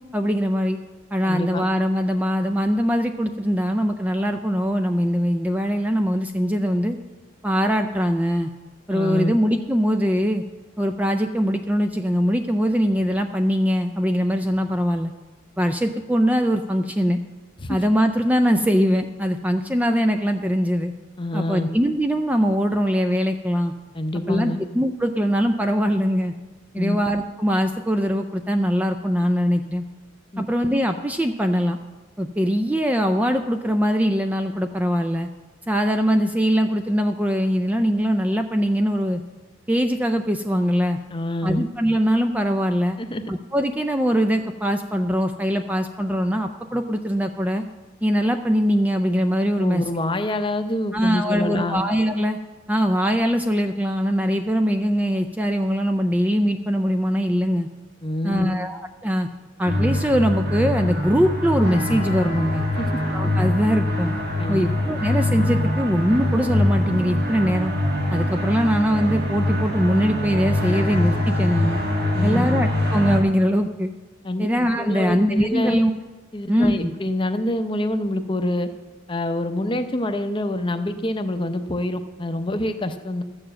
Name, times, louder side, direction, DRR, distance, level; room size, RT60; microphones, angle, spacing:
voice 1, 0.1-0.8 1.1-7.0 7.4-8.5 8.9-10.4 10.8-15.1 15.6-17.2 17.7-20.9 21.3-23.7 24.3-26.3 26.7-29.8 30.4-31.8 32.2-35.3 35.7-39.2 39.7-41.0 41.4-43.0 43.3-47.6 48.0-49.8 50.9-52.4 52.7-57.7 58.2-59.3 59.6-62.6 63.1-64.1 64.5-67.7 68.1-71.8 72.2-73.9 74.4-75.9 76.5-76.9, equal, 5° right, 6 dB, 0.4 m, -22 dB
voice 2, 1.2-1.6 8.9-9.4 17.6-17.8 21.2-21.7 23.9-24.6 26.7-27.0 30.3-30.4 41.1-41.6 43.0-43.2 49.6-51.8 58.0-58.5 62.8-63.0 64.4-64.6 72.1-72.5 74.2-74.5 74.8-75.9 76.3-78.7 79.1-83.2, left 1 dB, 25° left, 8 dB, 0.7 m, -26 dB
sound 1, 59.6-73.2, left 1 dB, 50° right, 1.6 m, -23 dB
13.0 x 7.0 x 7.5 m, 1.2 s
head